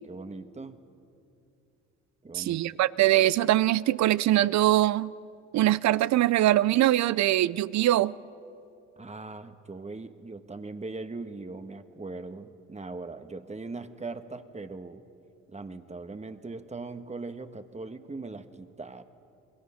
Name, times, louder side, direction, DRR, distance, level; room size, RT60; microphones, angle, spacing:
voice 1, 0.0-0.8 2.2-2.7 9.0-15.0 15.5-19.0, right 3 dB, 20° right, 1.4 m, -40 dB
voice 2, 2.3-5.1 5.5-8.2, right 14 dB, 65° right, 0.6 m, -22 dB
28.5 x 21.5 x 5.7 m
supercardioid pair, 65°, 30 cm